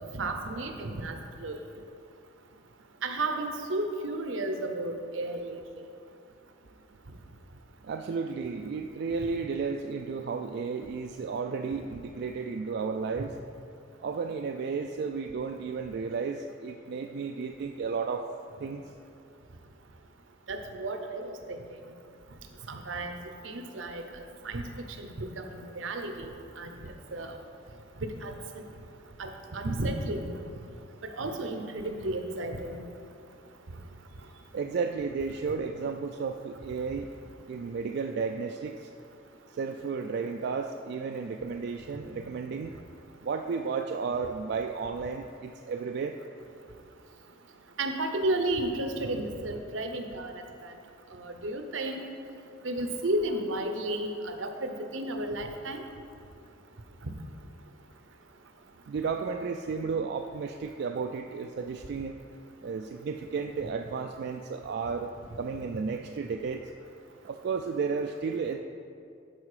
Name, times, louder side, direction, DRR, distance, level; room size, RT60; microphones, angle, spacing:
voice 1, 0.1-1.1 1.4-1.6 3.0-5.6 20.5-21.4 22.7-23.2 23.4-24.0 24.4-24.6 25.0-25.5 25.8-26.3 26.6-26.7 27.1-27.3 28.0-28.3 29.2-30.3 31.2-32.9 47.8-50.3 51.2-52.0 52.6-55.8, right 2 dB, 80° right, 6 dB, 0.8 m, -32 dB
voice 2, 7.8-13.3 14.0-18.3 18.6-18.8 34.5-37.1 37.5-38.8 39.6-42.7 43.2-46.1 58.9-62.1 62.6-66.6 67.2-68.6, right 5 dB, 55° right, 4 dB, 0.3 m, -33 dB
12.0 x 4.5 x 4.9 m, 2.5 s
head